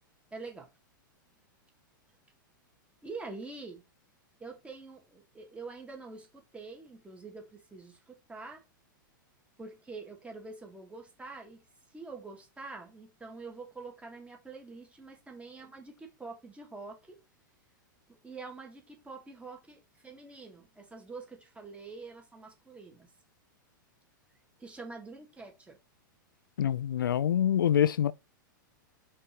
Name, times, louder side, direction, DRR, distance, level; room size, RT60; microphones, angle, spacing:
voice 1, 0.3-0.7 3.0-3.8 4.4-8.6 9.6-11.6 11.9-17.2 18.1-23.1 24.6-25.8, right 3 dB, 10° right, 2.3 m, -46 dB
voice 2, 26.6-28.1, left 9 dB, 80° left, 0.5 m, -25 dB
5.1 x 4.3 x 4.5 m
hypercardioid pair, 110°, 11 cm